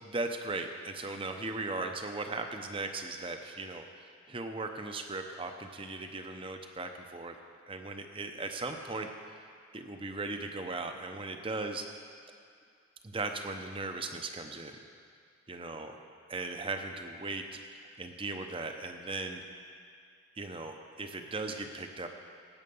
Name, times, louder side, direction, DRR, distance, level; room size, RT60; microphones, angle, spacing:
voice 1, 0.0-7.3 7.7-9.1 9.7-11.9 13.0-14.8 15.5-15.9 16.3-17.6 18.0-19.4 20.4-22.1, right 3 dB, 25° right, 5 dB, 0.8 m, -38 dB
16.0 x 8.8 x 5.5 m, 2.3 s
head